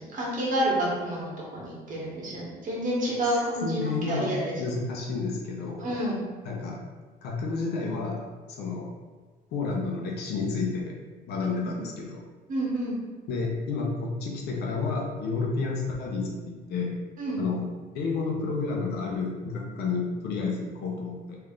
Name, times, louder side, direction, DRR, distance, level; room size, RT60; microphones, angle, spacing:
voice 1, 0.0-4.5 5.8-6.2 11.7-11.8 12.5-12.9 17.2-17.4, right 1 dB, 50° right, -5 dB, 1.5 m, -29 dB
voice 2, 3.6-5.8 6.4-6.8 7.2-8.2 8.6-8.9 9.5-11.0 11.3-12.2 13.3-17.0 17.4-17.7 17.9-21.4, left 4 dB, 75° left, -1 dB, 0.8 m, -30 dB
3.3 x 2.7 x 3.7 m, 1.4 s
cardioid pair, 110°, 17 cm